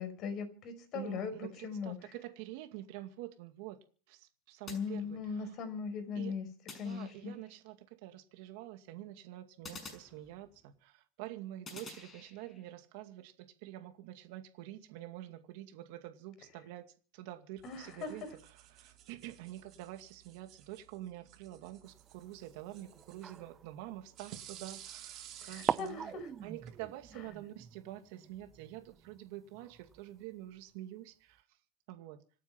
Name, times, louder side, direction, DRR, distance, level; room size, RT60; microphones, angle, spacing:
voice 1, 0.0-2.0 4.7-6.5 6.8-7.3 17.6-18.2 25.4-26.3, left 5 dB, 40° left, 5.3 m, -39 dB
voice 2, 0.9-3.8 4.1-5.6 6.1-6.4 6.8-26.1 26.4-31.6 31.9-32.2, right 14 dB, 65° right, 2.2 m, -47 dB
sound 1, 4.7-5.6 6.7-7.5 9.6-10.8 11.6-12.7, left 3 dB, 20° left, 6.1 m, -51 dB
sound 2, 17.6-26.8, right 11 dB, 40° right, 3.0 m, -55 dB
sound 3, 21.9-24.8 25.3-25.4 25.7-30.3, right 7 dB, 25° right, 0.7 m, -43 dB
26.5 x 9.2 x 5.9 m
supercardioid pair, 145°, 0 cm